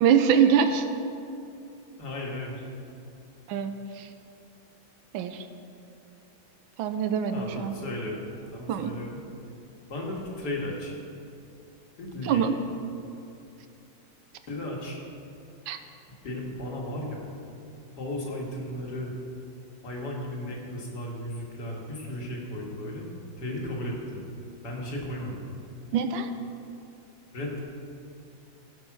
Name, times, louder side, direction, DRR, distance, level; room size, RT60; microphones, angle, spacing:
voice 1, 0.0-0.9 3.5-4.1 5.1-5.5 6.8-7.7 8.7-8.9 12.2-12.5 15.7-15.8 25.9-26.3, right 7 dB, 85° right, 8 dB, 1.4 m, -24 dB
voice 2, 2.0-2.7 7.3-9.2 9.9-11.0 12.0-12.4 14.5-15.0 16.2-17.3 18.0-19.1 19.8-23.1 23.4-24.2 24.6-25.4 27.3-27.6, left 1 dB, 55° left, -2 dB, 2.3 m, -35 dB
15.0 x 5.4 x 6.0 m, 2.6 s
omnidirectional pair, 2.1 m